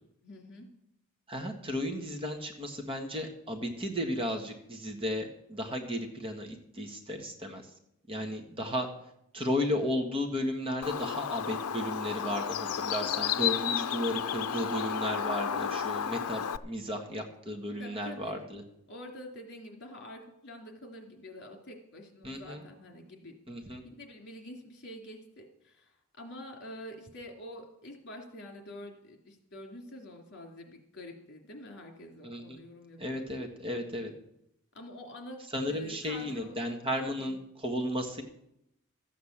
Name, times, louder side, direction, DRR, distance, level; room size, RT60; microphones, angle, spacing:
voice 1, 0.2-0.7 17.8-18.4 18.9-23.3 23.8-33.2 34.7-35.4 35.6-36.5 37.0-37.3, left 1 dB, 50° left, 3 dB, 2.9 m, -47 dB
voice 2, 1.3-7.6 8.1-8.9 9.3-18.6 22.2-22.6 23.5-23.8 32.2-32.6 33.0-34.1 35.5-38.2, left 1 dB, 25° right, 4 dB, 1.5 m, -34 dB
Bird, 10.8-16.6, left 8 dB, 85° left, 0.5 m, -32 dB
14.0 x 8.4 x 7.3 m, 0.78 s
head